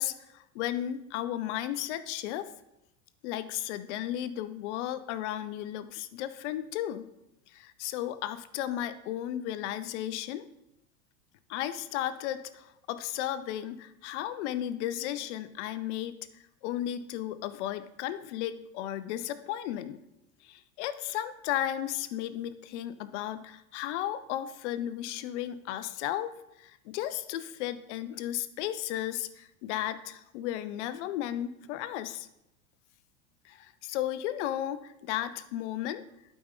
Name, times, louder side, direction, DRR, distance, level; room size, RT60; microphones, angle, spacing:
voice 1, 0.0-2.5 3.2-7.1 7.5-10.5 11.5-20.0 20.4-26.3 26.6-32.3 33.4-36.0, left 12 dB, 50° left, 13 dB, 0.7 m, -34 dB
11.5 x 5.1 x 3.8 m, 0.88 s
hypercardioid pair, 90°, 44 cm